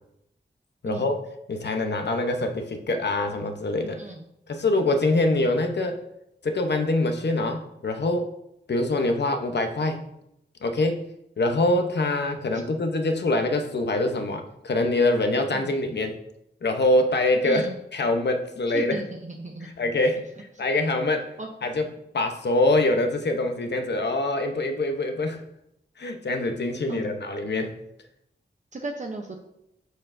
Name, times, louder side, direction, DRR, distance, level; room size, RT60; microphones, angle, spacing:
voice 1, 0.8-1.2 1.5-4.0 4.5-6.0 6.4-8.3 8.7-10.0 10.6-11.0 11.4-16.2 16.6-19.0 19.6-21.3 21.6-21.9 22.1-25.4 26.0-27.7, left 2 dB, 70° left, 5 dB, 0.9 m, -24 dB
voice 2, 17.4-17.7 18.7-19.7 21.4-21.5 26.9-27.1 28.7-29.3, right 2 dB, 40° right, 2 dB, 0.7 m, -35 dB
13.0 x 4.4 x 2.6 m, 0.80 s
wide cardioid pair, 80°, 18 cm